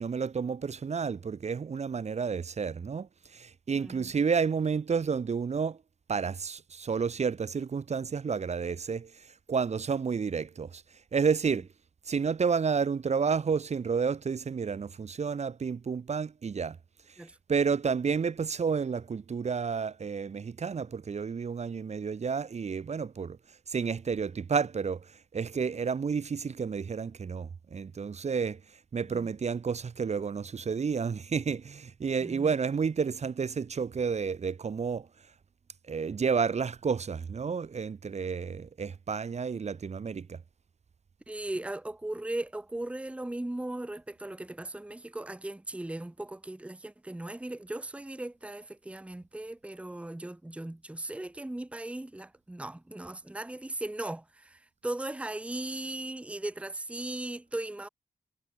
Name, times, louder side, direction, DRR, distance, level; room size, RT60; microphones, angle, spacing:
voice 1, 0.0-5.8 6.1-10.8 11.1-11.7 12.1-16.8 17.5-23.4 23.7-28.6 28.9-35.1 35.9-40.4, right 6 dB, 50° right, 1.2 m, -30 dB
voice 2, 3.7-4.1 17.2-17.4 32.2-32.5 41.3-57.9, right 1 dB, 10° right, 1.0 m, -38 dB
wide cardioid pair, 125°, 15 cm